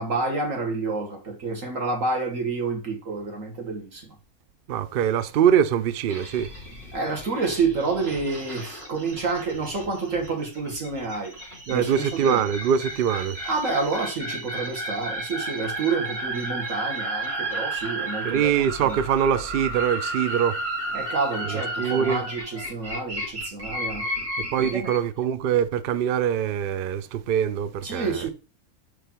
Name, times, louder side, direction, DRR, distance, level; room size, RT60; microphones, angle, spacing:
voice 1, 0.0-4.1 6.9-11.3 11.7-12.5 13.5-19.0 20.9-24.1 24.6-24.9 27.8-28.3, right 4 dB, 60° right, 2.0 m, -29 dB
voice 2, 4.7-6.5 11.7-13.4 18.2-20.6 21.4-22.2 24.4-28.3, right 8 dB, 85° right, 0.4 m, -23 dB
sound 1, 6.1-25.0, right 1 dB, 45° right, 2.5 m, -33 dB
5.0 x 4.6 x 4.3 m
omnidirectional pair, 1.5 m